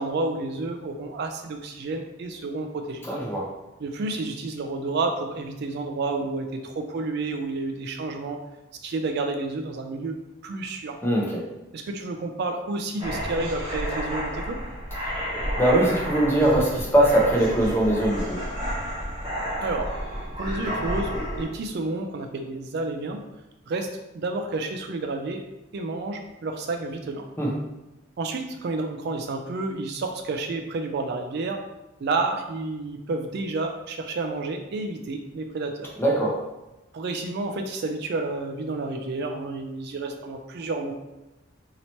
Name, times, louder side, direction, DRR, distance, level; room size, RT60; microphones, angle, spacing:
voice 1, 0.0-3.1 3.8-8.4 8.8-10.2 10.4-11.0 11.7-14.6 19.6-19.9 20.4-21.1 21.4-23.2 23.7-23.9 24.1-25.4 25.7-27.3 28.2-31.6 32.0-35.9 36.9-40.9, right 3 dB, 55° right, 4 dB, 0.3 m, -30 dB
voice 2, 3.0-3.5 11.0-11.2 15.6-18.4 27.4-27.5 36.0-36.3, right 1 dB, 10° left, -3 dB, 0.7 m, -21 dB
sound 1, 13.0-21.4, equal, 25° right, 1.1 m, -31 dB
2.9 x 2.8 x 4.3 m, 0.98 s
head